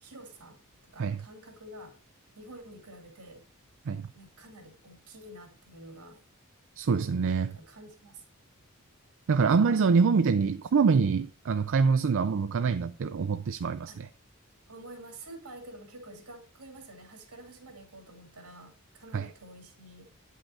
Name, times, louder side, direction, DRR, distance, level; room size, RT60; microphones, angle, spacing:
voice 1, 0.0-0.6 0.9-1.9 2.3-3.4 4.1-6.2 7.5-8.2 13.9-14.0 14.7-20.1, right 1 dB, 80° right, 2.5 m, -48 dB
voice 2, 6.8-7.5 9.3-14.1 19.1-19.3, right 5 dB, 60° right, 0.4 m, -25 dB
9.1 x 5.6 x 4.2 m
head